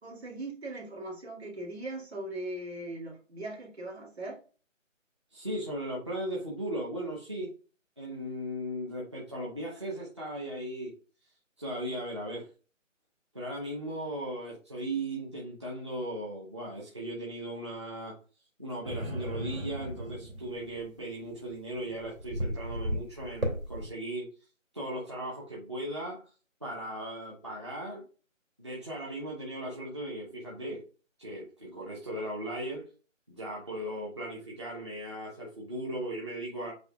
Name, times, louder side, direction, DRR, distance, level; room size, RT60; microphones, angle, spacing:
voice 1, 0.0-4.4, right 2 dB, 55° right, -2 dB, 2.2 m, -39 dB
voice 2, 5.3-7.5 8.0-10.9 11.6-12.5 13.3-18.1 18.6-24.3 24.7-26.3 26.6-28.0 28.6-30.8 31.2-32.9 33.3-36.7, right 1 dB, 20° right, -5 dB, 0.8 m, -37 dB
sound 1, 18.8-23.9, equal, 90° right, 2.0 m, -36 dB
7.8 x 2.7 x 2.3 m, 0.36 s
figure-of-eight pair, 170°, 39 cm